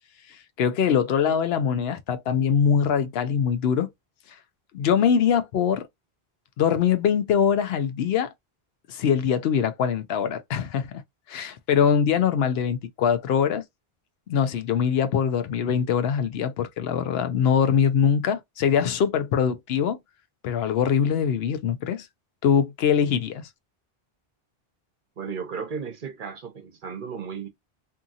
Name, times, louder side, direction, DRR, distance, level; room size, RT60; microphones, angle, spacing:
voice 1, 0.6-3.9 4.7-5.9 6.6-8.3 8.9-11.0 11.3-13.6 14.3-20.0 20.4-22.1 22.4-23.4, left 7 dB, 80° left, 0.8 m, -23 dB
voice 2, 25.2-27.5, right 6 dB, 60° right, 0.8 m, -34 dB
2.7 x 2.6 x 2.3 m
omnidirectional pair, 1.0 m